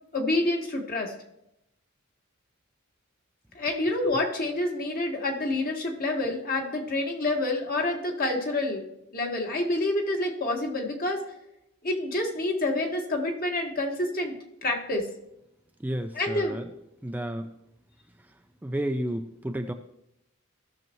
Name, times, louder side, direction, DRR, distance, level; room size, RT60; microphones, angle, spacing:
voice 1, 0.1-1.1 3.6-11.2 11.8-14.3 14.6-15.1 16.1-16.6, left 2 dB, 45° left, 2 dB, 1.7 m, -28 dB
voice 2, 15.8-16.7 17.0-17.5 18.6-19.7, right 1 dB, 10° right, 6 dB, 0.4 m, -31 dB
16.5 x 6.7 x 3.1 m, 0.83 s
head